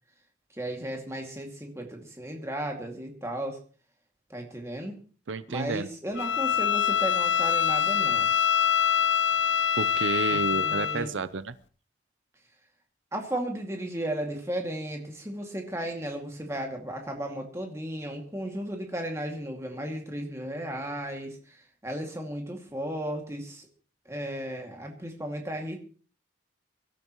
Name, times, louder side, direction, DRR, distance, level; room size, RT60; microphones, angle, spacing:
voice 1, 0.5-3.6 4.3-5.0 5.5-8.3 10.3-11.1 13.1-23.7 24.1-25.9, right 1 dB, 15° right, 2 dB, 2.3 m, -35 dB
voice 2, 5.3-5.9 9.8-11.6, right 4 dB, 85° right, 14 dB, 0.6 m, -30 dB
Bowed string instrument, 6.2-11.0, left 8 dB, 75° left, 0.8 m, -25 dB
23.5 x 12.5 x 3.1 m, 0.40 s
head